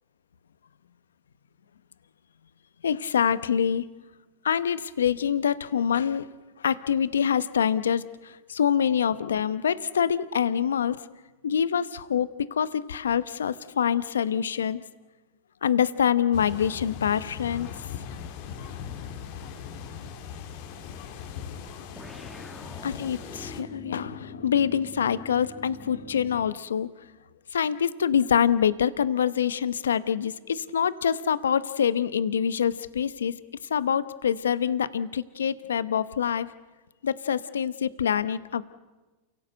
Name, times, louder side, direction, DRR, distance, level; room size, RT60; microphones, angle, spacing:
voice 1, 2.8-3.8 4.4-6.3 6.6-11.0 11.4-14.8 15.6-17.7 22.8-26.9 27.5-33.3 33.7-36.5 37.0-38.6, left 8 dB, 85° left, 16 dB, 0.8 m, -25 dB
sound 1, 16.3-23.6, left 7 dB, 60° left, 2.5 m, -39 dB
sound 2, 21.9-26.7, left 1 dB, ahead, 1.8 m, -44 dB
29.0 x 17.0 x 8.0 m, 1.2 s
hypercardioid pair, 100°, 0 cm